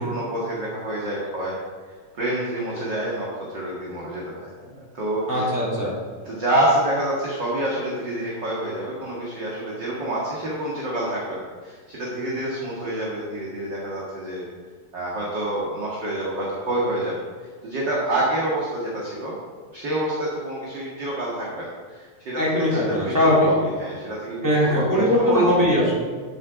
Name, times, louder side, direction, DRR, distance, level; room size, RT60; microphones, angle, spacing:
voice 1, 0.0-1.5 1.9-5.6 6.2-14.5 14.9-17.1 17.6-19.4 19.7-25.4, right 1 dB, 40° right, -5 dB, 2.2 m, -27 dB
voice 2, 5.3-5.9 22.4-23.5 24.4-25.9, left 1 dB, 5° right, -7 dB, 3.6 m, -20 dB
11.5 x 7.9 x 5.1 m, 1.5 s
omnidirectional pair, 3.9 m